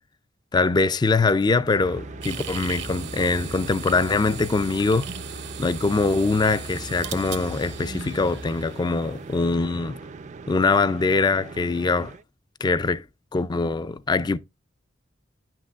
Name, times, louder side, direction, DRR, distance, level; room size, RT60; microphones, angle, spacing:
voice 1, 0.5-5.1 5.6-10.0 10.5-12.1 12.6-13.0 13.3-14.4, left 3 dB, 20° left, 0.3 m, -23 dB
Musical instrument, 1.6-8.8, equal, 75° left, 0.7 m, -41 dB
sound 1, 1.6-12.2, right 4 dB, 40° right, 0.4 m, -41 dB
sound 2, 2.2-9.5, right 9 dB, 65° right, 0.8 m, -39 dB
11.0 x 6.1 x 2.3 m
head